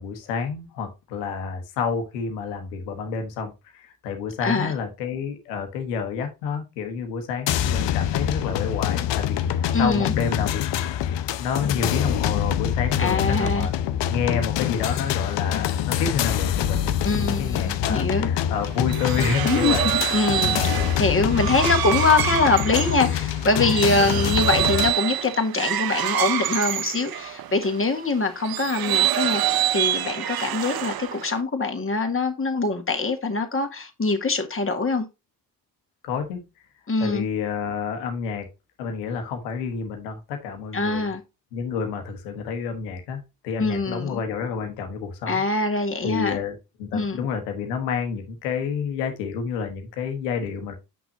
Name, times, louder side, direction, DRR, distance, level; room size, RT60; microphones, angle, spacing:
voice 1, 0.0-13.7 14.1-19.9 20.4-20.8 24.0-24.3 36.0-36.4 37.0-38.5 38.8-41.1 41.5-45.4 46.0-50.7, left 6 dB, 90° left, 1.3 m, -29 dB
voice 2, 4.4-4.7 9.7-10.1 13.0-13.7 17.0-18.3 19.4-35.1 36.9-37.3 40.7-41.2 43.6-44.2 45.3-46.4 46.9-47.2, left 3 dB, 25° left, 1.9 m, -24 dB
sound 1, 7.5-24.9, left 10 dB, 60° left, 0.7 m, -25 dB
sound 2, 18.6-27.8 28.4-31.4, right 12 dB, 50° right, 0.7 m, -26 dB
7.1 x 6.0 x 2.7 m
hypercardioid pair, 45°, 48 cm